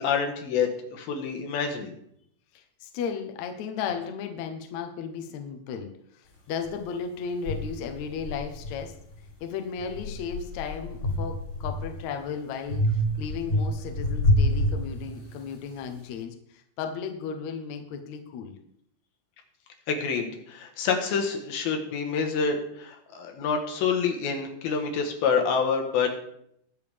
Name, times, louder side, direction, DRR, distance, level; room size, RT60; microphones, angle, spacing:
voice 1, 0.0-1.9 19.9-26.2, left 6 dB, 80° left, 3 dB, 3.2 m, -27 dB
voice 2, 2.5-5.9 6.1-8.9 9.4-18.5, left 6 dB, 65° left, 5 dB, 2.0 m, -35 dB
sound 1, 6.7-6.8 7.5-9.3 9.8-12.1 12.7-15.5, left 1 dB, 35° left, 2.7 m, -28 dB
21.0 x 7.0 x 3.5 m, 0.72 s
omnidirectional pair, 4.2 m